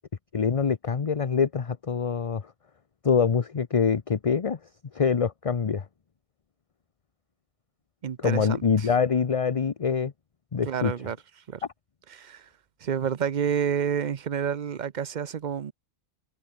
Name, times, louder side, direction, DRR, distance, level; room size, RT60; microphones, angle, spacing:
voice 1, 0.3-2.5 3.0-4.6 4.9-5.9 8.2-10.1 10.5-10.9, left 6 dB, 35° left, 0.7 m, -25 dB
voice 2, 8.0-8.9 10.6-11.2 11.5-11.6 12.1-12.5 12.8-15.7, right 8 dB, 45° right, 0.7 m, -29 dB
omnidirectional pair, 1.2 m